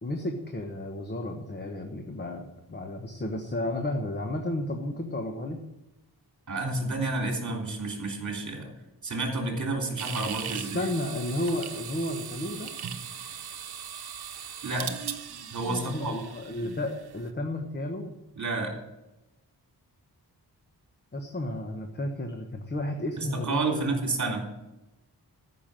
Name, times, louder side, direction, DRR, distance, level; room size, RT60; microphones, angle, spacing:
voice 1, 0.0-5.6 10.5-12.7 15.7-18.2 21.1-24.0, left 1 dB, 25° left, 3 dB, 1.2 m, -32 dB
voice 2, 6.5-8.7 9.0-10.8 14.6-14.9 15.5-16.1 18.4-18.8 23.2-24.5, right 3 dB, 45° right, 1 dB, 3.3 m, -30 dB
sound 1, 10.0-17.2, right 7 dB, 70° right, 1.0 m, -39 dB
14.0 x 6.1 x 7.5 m, 0.95 s
wide cardioid pair, 140°, 39 cm